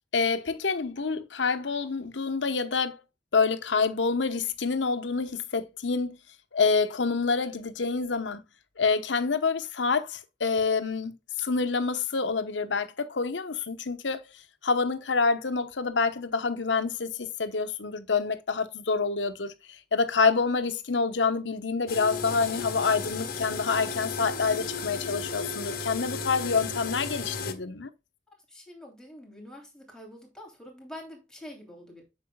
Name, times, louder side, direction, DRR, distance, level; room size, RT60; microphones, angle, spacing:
voice 1, 0.1-3.0 3.3-6.2 6.5-8.4 8.8-14.2 14.6-27.9, left 4 dB, 90° left, 1.0 m, -27 dB
sound 1, 21.9-27.5, left 4 dB, 55° left, 1.3 m, -34 dB
voice 2, 28.5-32.0, left 1 dB, 5° left, 2.9 m, -46 dB
8.7 x 6.2 x 2.2 m
head